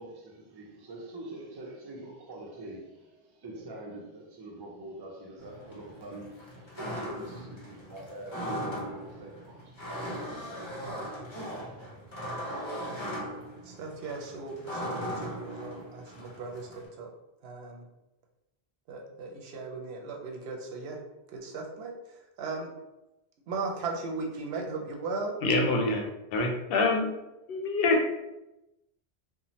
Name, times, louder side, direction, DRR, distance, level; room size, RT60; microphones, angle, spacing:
voice 1, 0.0-11.8, right 1 dB, 35° right, 0.4 m, -44 dB
sound 1, 5.4-16.9, equal, 35° left, 0.6 m, -39 dB
voice 2, 13.6-17.1 17.4-17.8 18.9-21.0 21.3-22.7 23.5-25.3, right 3 dB, 75° right, 0.8 m, -37 dB
voice 3, 25.4-26.0 26.3-27.1 27.5-28.1, left 2 dB, 65° left, 0.7 m, -25 dB
2.7 x 2.1 x 3.0 m
omnidirectional pair, 1.1 m